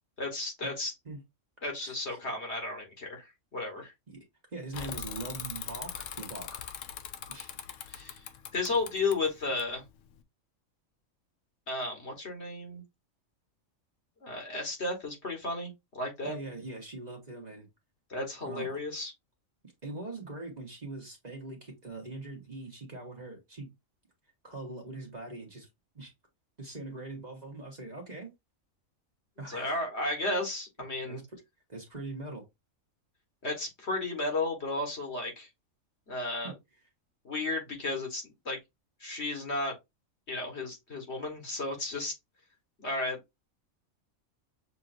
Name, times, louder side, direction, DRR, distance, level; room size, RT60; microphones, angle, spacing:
voice 1, 0.2-0.9 1.6-3.9 7.9-8.2 8.5-9.8 11.7-12.8 14.2-16.3 18.1-19.1 29.5-31.2 33.4-35.5 36.1-36.5 37.2-38.6 39.0-39.7 40.3-42.1 42.8-43.2, left 2 dB, 55° left, 1.7 m, -33 dB
voice 2, 1.8-2.2 4.1-4.2 4.5-6.6 7.3-7.6 16.2-17.7 18.5-18.8 19.8-23.7 24.4-25.7 25.9-26.1 26.6-28.3 29.4-29.8 31.0-31.2 31.7-32.4 36.4-36.5, right 2 dB, 35° right, 1.4 m, -42 dB
Bicycle / Mechanisms, 4.7-10.2, left 9 dB, 70° left, 1.0 m, -41 dB
6.9 x 2.8 x 2.5 m
omnidirectional pair, 1.4 m